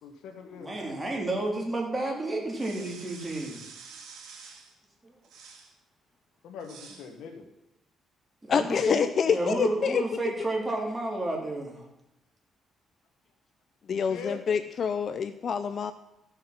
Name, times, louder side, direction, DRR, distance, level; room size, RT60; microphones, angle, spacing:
voice 1, 0.0-0.7 6.4-7.4 13.9-14.4, left 6 dB, 85° left, 5 dB, 1.7 m, -42 dB
voice 2, 0.6-3.6 5.0-5.1 8.4-9.0 9.3-11.8, right 2 dB, 20° right, -1 dB, 3.2 m, -31 dB
sound 1, 2.5-4.7 5.2-5.7 6.6-7.1, right 5 dB, 75° right, 2.4 m, -48 dB
voice 3, 8.5-10.0 13.9-15.9, left 6 dB, 50° left, 11 dB, 0.5 m, -26 dB
14.5 x 6.5 x 6.0 m, 0.88 s
cardioid pair, 90°, 0 cm